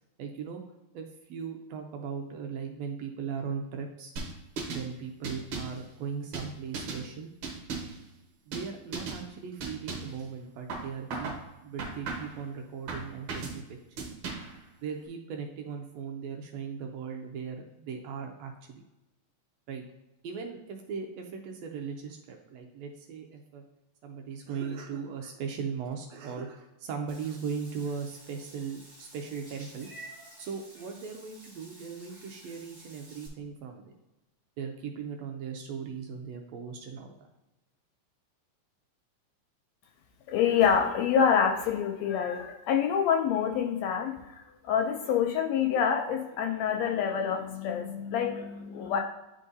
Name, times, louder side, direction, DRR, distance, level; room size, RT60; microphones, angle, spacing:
voice 1, 0.2-0.6 0.9-4.1 4.7-7.3 8.5-11.3 11.6-13.6 14.0-14.1 14.8-18.8 19.7-19.8 20.2-23.6 24.0-29.9 30.4-33.8 34.6-37.1, right 6 dB, 75° right, 3 dB, 1.6 m, -38 dB
sound 1, 4.2-4.9 5.2-5.8 6.3-7.0 7.4-8.0 8.5-8.7 8.9-9.2 9.6-10.2 10.7-11.4 11.8-12.4 12.9-13.6 14.0-14.6, right 4 dB, 60° right, 1.6 m, -36 dB
Meow / Water / Bathtub (filling or washing), 27.1-33.3, right 1 dB, 10° right, 1.7 m, -51 dB
voice 2, 40.3-49.0, left 7 dB, 80° left, 3 dB, 1.6 m, -27 dB
10.0 x 3.7 x 2.6 m, 0.99 s
omnidirectional pair, 3.4 m